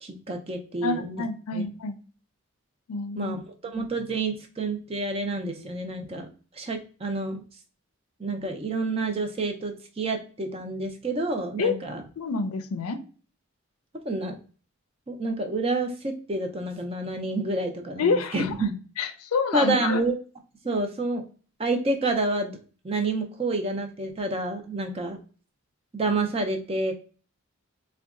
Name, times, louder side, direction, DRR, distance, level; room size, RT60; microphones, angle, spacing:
voice 1, 0.0-1.2 1.5-1.6 3.2-6.3 6.5-7.4 8.2-12.0 14.0-14.4 15.1-18.7 19.5-20.2 20.6-21.2 21.6-22.6 22.8-25.2 25.9-26.9, right 2 dB, 25° right, 4 dB, 0.4 m, -28 dB
voice 2, 0.8-2.0 2.9-3.3 11.6-11.7 12.2-13.0 18.0-18.5 19.0-20.0, left 4 dB, 85° left, 9 dB, 0.4 m, -27 dB
3.7 x 2.2 x 2.4 m, 0.38 s
head